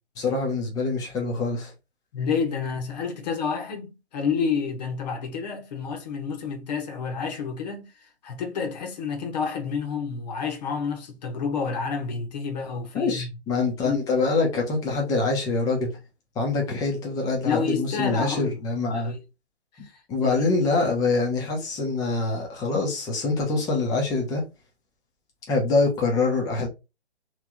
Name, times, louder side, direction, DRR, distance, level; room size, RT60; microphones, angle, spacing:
voice 1, 0.2-1.7 12.9-16.0 16.4-19.1 20.1-24.5 25.5-26.7, left 3 dB, 10° left, 0.8 m, -25 dB
voice 2, 2.1-7.9 8.2-13.3 13.8-14.0 17.4-18.6 18.9-19.2 19.8-19.9 20.2-20.8, left 5 dB, 40° left, 1.1 m, -29 dB
3.3 x 3.2 x 3.6 m
hypercardioid pair, 145°, 32 cm